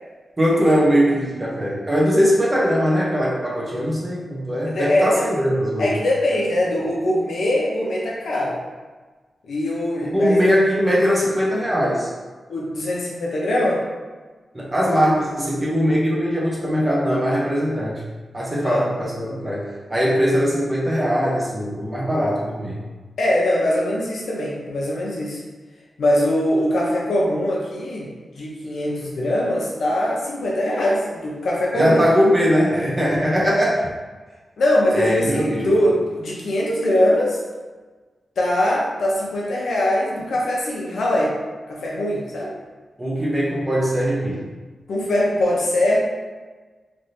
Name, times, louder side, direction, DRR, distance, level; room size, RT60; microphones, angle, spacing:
voice 1, 0.4-6.0 10.1-12.1 14.5-18.0 18.3-22.8 31.7-33.9 34.9-35.8 43.0-44.5, equal, 15° right, -5 dB, 0.6 m, -20 dB
voice 2, 4.7-5.2 5.8-8.6 9.4-10.4 12.5-13.8 18.6-18.9 23.2-25.4 26.0-28.1 28.3-32.0 34.6-37.4 38.4-41.3 41.7-42.5 44.9-46.0, left 1 dB, 80° left, -4 dB, 0.7 m, -22 dB
3.3 x 2.6 x 2.7 m, 1.3 s
wide cardioid pair, 180°, 0 cm